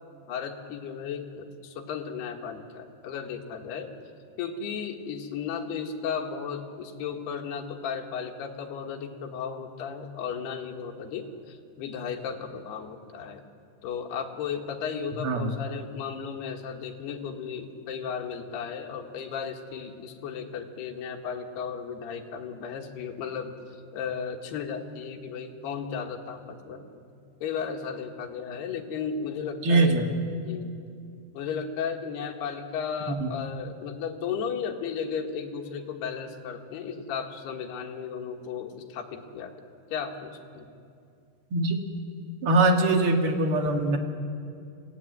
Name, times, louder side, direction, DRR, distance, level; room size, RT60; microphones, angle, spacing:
voice 1, 0.3-3.9 4.4-13.4 13.8-27.0 27.4-30.0 30.4-30.7 31.3-39.5 39.9-40.7, left 6 dB, 70° left, 2 dB, 3.5 m, -35 dB
voice 2, 15.2-15.5 29.6-30.0 33.1-33.3 41.5-41.8 42.4-44.0, right 2 dB, 60° right, 4 dB, 1.4 m, -22 dB
26.0 x 17.0 x 9.4 m, 2.5 s
omnidirectional pair, 5.2 m